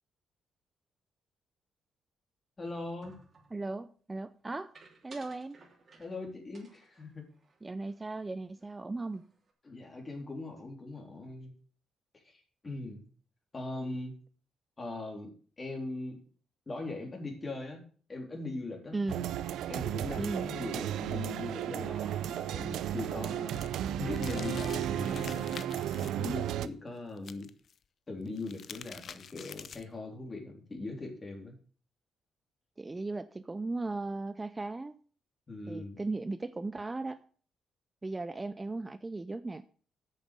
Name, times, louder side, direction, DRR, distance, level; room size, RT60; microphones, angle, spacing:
voice 1, 2.6-3.1 6.0-7.3 9.6-11.5 12.2-13.1 13.5-14.1 14.8-15.3 15.6-16.2 16.7-19.0 19.7-23.6 24.0-25.8 26.2-27.5 28.1-31.6 35.5-36.0, left 2 dB, 30° left, 2 dB, 3.5 m, -40 dB
sound 1, 3.0-3.6 4.7-6.2 6.5-8.3 8.6-8.7 9.0-9.5, right 4 dB, 40° right, 3.0 m, -58 dB
voice 2, 3.5-4.7 5.0-5.6 7.6-9.3 18.9-19.3 20.2-20.5 32.8-35.0 35.7-37.2 38.0-39.6, right 3 dB, 20° right, 13 dB, 0.5 m, -37 dB
sound 2, 19.1-26.7, right 11 dB, 80° right, 0.5 m, -34 dB
sound 3, 22.7-26.1 27.2-27.7 28.2-30.0, left 7 dB, 55° left, 0.6 m, -48 dB
8.8 x 6.6 x 6.6 m, 0.44 s
cardioid pair, 90°, 0 cm